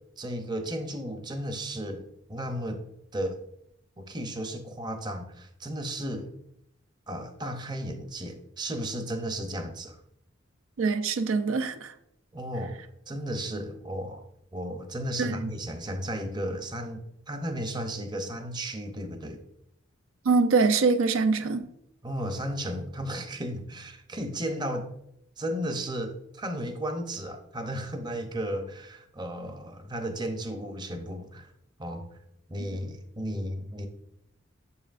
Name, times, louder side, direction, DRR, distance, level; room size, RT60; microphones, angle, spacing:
voice 1, 0.2-2.8 3.1-3.4 4.0-6.3 7.1-10.0 12.3-12.8 13.1-14.2 14.5-19.4 22.0-24.9 25.4-31.5 31.8-32.0 32.5-33.9, equal, 20° right, 0.6 m, -34 dB
voice 2, 10.8-11.9 15.2-15.5 20.3-21.7, right 4 dB, 85° right, 0.4 m, -24 dB
7.0 x 5.5 x 2.5 m
head